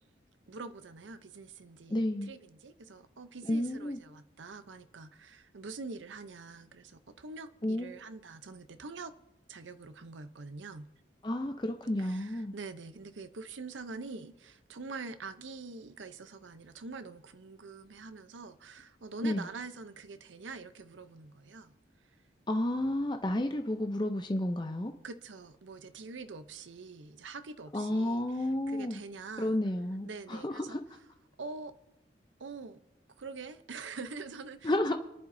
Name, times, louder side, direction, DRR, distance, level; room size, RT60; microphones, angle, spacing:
voice 1, 0.5-9.1 9.5-10.9 12.0-21.8 25.0-29.6 30.0-30.8 31.4-31.7 32.4-32.8 33.2-34.9, right 4 dB, 90° right, 0.7 m, -45 dB
voice 2, 1.9-2.3 3.5-4.0 7.6-7.9 11.2-12.5 19.2-19.5 22.5-24.9 27.7-29.0 29.4-30.8 34.6-34.9, left 1 dB, 25° left, 0.6 m, -31 dB
29.5 x 11.0 x 2.7 m
head